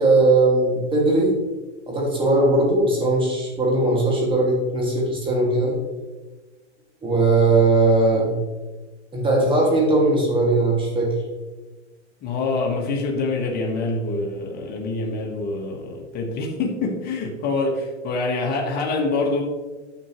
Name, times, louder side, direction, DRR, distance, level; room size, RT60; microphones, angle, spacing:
voice 1, 0.0-1.3 1.9-5.8 7.0-8.3 9.1-11.1, right 2 dB, 15° right, -2 dB, 2.2 m, -19 dB
voice 2, 12.2-19.4, left 3 dB, 25° left, 0 dB, 1.4 m, -25 dB
10.0 x 6.1 x 3.1 m, 1.3 s
hypercardioid pair, 130°, 35 cm